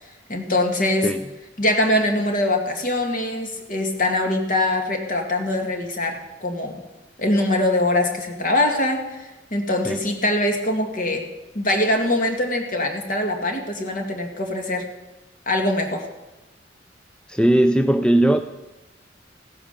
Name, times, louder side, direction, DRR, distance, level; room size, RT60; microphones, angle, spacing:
voice 1, 0.3-1.1 1.6-6.8 7.2-11.3 11.5-14.9 15.5-16.1, left 1 dB, 45° left, 3 dB, 2.2 m, -23 dB
voice 2, 17.3-18.4, right 1 dB, 5° left, 8 dB, 0.4 m, -18 dB
16.0 x 9.7 x 6.8 m, 1.1 s
head